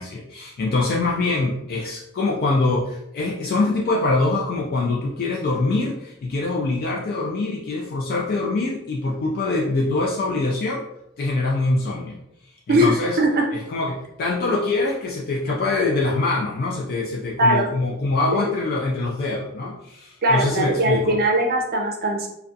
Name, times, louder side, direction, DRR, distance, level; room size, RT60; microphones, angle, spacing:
voice 1, 0.0-10.8 11.2-12.2 12.7-13.2 13.5-21.2, left 3 dB, 45° left, -2 dB, 0.3 m, -24 dB
voice 2, 12.7-13.4 17.4-17.7 18.3-18.5 20.2-22.3, right 1 dB, 45° right, 1 dB, 0.5 m, -20 dB
2.4 x 2.2 x 2.5 m, 0.82 s
head